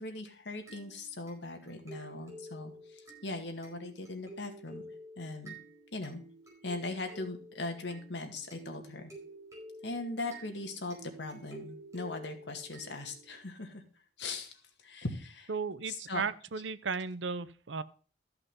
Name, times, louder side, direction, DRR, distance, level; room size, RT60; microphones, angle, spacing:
voice 1, 0.0-4.8 5.2-5.6 5.9-6.2 6.6-9.1 9.8-13.8 14.2-15.5 15.9-16.2, left 2 dB, 75° left, 4 dB, 2.0 m, -39 dB
sound 1, 0.7-13.4, right 1 dB, 15° right, 4.6 m, -51 dB
voice 2, 15.5-17.8, right 5 dB, 90° right, 15 dB, 0.7 m, -35 dB
13.5 x 5.8 x 5.5 m, 0.40 s
head